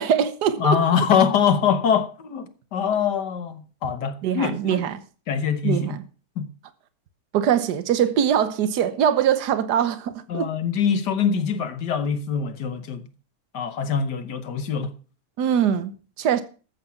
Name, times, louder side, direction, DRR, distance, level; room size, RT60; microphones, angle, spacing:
voice 1, 0.0-0.8 4.2-5.0 5.6-6.0 7.3-10.5 15.4-16.4, right 9 dB, 80° right, 1.5 m, -22 dB
voice 2, 0.6-4.8 5.3-5.9 6.4-6.5 10.3-13.0 13.5-14.9, left 7 dB, 80° left, 1.8 m, -23 dB
13.5 x 7.7 x 5.7 m
omnidirectional pair, 1.8 m